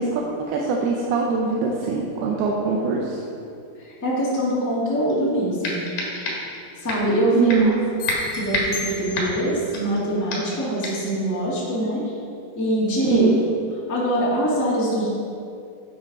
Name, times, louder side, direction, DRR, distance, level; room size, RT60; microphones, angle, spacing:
voice 1, 0.0-3.2 7.3-7.8 13.1-13.4, right 4 dB, 85° right, -1 dB, 2.8 m, -22 dB
voice 2, 3.8-5.8 6.8-7.8 8.3-12.0 12.5-13.3 13.9-15.1, right 1 dB, 10° left, -7 dB, 0.8 m, -23 dB
sound 1, 5.1-5.2 5.6-6.6 6.9-7.1 7.5-7.8 8.1-10.0 10.3-10.6 10.8-11.1, left 2 dB, 55° left, 2.8 m, -28 dB
sound 2, 8.0-9.6, left 7 dB, 80° left, 1.7 m, -35 dB
10.5 x 7.8 x 4.1 m, 2.5 s
omnidirectional pair, 4.4 m